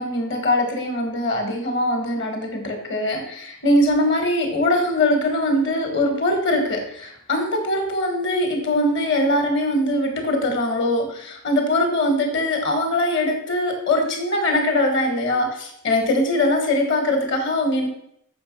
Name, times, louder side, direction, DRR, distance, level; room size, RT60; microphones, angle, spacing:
voice 1, 0.0-17.9, left 1 dB, 55° left, 4 dB, 2.0 m, -22 dB
7.6 x 6.0 x 5.5 m, 0.71 s
head